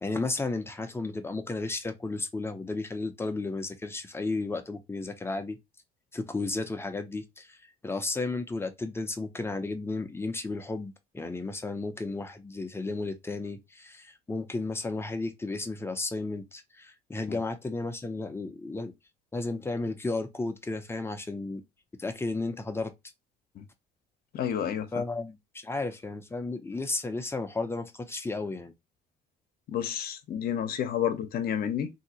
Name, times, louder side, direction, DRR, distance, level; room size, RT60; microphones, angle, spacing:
voice 1, 0.0-5.6 6.1-7.6 7.8-18.9 19.3-21.6 22.0-22.9 24.9-28.7, left 3 dB, 15° left, 0.7 m, -33 dB
voice 2, 24.3-24.9 29.7-31.9, left 9 dB, 60° left, 0.8 m, -30 dB
3.1 x 2.8 x 2.8 m
cardioid pair, 110°, 17 cm